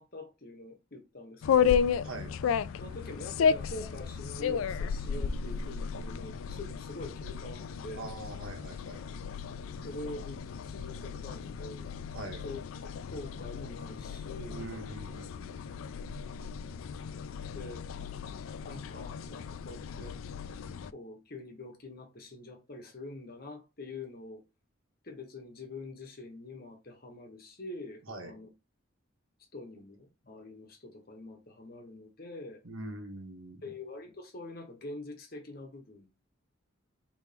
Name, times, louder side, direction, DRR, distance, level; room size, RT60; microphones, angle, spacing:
voice 1, 0.0-1.9 2.8-8.1 9.8-10.4 10.6-11.9 12.4-12.6 13.1-14.7 17.5-17.9 18.6-20.2 20.9-24.4 25.0-28.5 29.5-32.6 33.6-36.2, left 2 dB, 45° left, 1.1 m, -45 dB
sound 1, 1.4-20.9, left 7 dB, 80° left, 0.3 m, -34 dB
voice 2, 2.0-2.4 7.9-9.0 12.1-12.4 14.5-15.8 28.1-28.4 32.6-33.6, right 2 dB, 85° right, 1.3 m, -43 dB
4.2 x 3.1 x 3.4 m
head